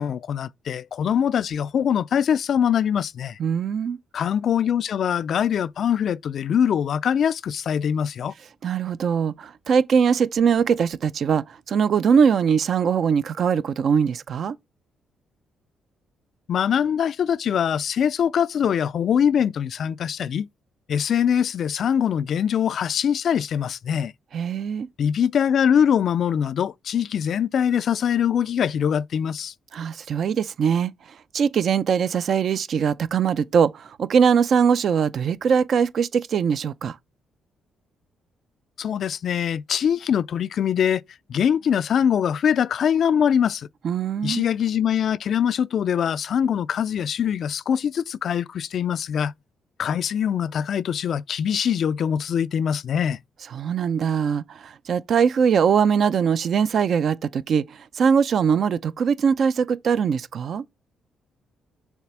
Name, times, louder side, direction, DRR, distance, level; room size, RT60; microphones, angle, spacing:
voice 1, 0.0-3.4 4.1-8.3 16.5-20.5 20.9-24.1 25.0-29.5 38.8-41.0 41.3-43.7 44.2-49.3 49.8-53.2, left 8 dB, 60° left, 0.3 m, -23 dB
voice 2, 3.4-4.0 8.6-14.6 24.3-24.9 29.7-36.9 43.8-44.4 53.5-60.6, right 7 dB, 60° right, 0.5 m, -21 dB
7.2 x 3.3 x 6.0 m
cardioid pair, 90°, 0 cm